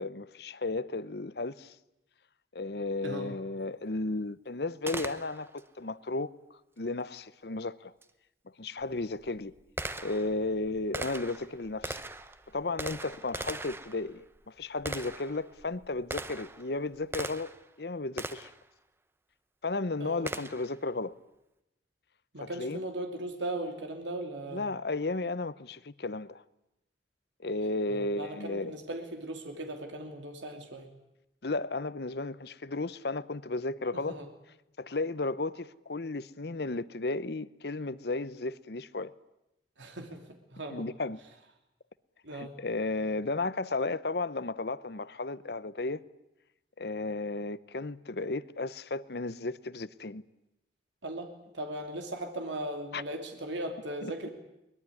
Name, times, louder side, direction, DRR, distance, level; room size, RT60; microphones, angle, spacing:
voice 1, 0.0-1.8 2.5-7.9 8.6-9.5 10.0-12.0 12.5-17.5 17.8-18.5 19.6-21.1 22.4-22.8 24.5-26.4 27.4-28.7 31.4-34.2 34.8-39.1 40.7-41.2 42.3-46.0 46.8-50.2 52.9-53.0 54.0-54.3, left 3 dB, 60° left, 0.9 m, -34 dB
voice 2, 3.0-3.3 20.0-20.3 22.3-24.6 27.9-30.9 34.1-34.3 39.8-40.2 40.5-40.8 42.2-42.5 51.0-51.3 51.5-54.3, right 1 dB, 90° right, 2.9 m, -38 dB
Gunshot gunfire, 4.9-5.7 8.0-8.1 8.8-17.7 18.2-18.6 20.3-20.8, right 2 dB, 15° right, 0.8 m, -40 dB
23.0 x 21.0 x 9.8 m
head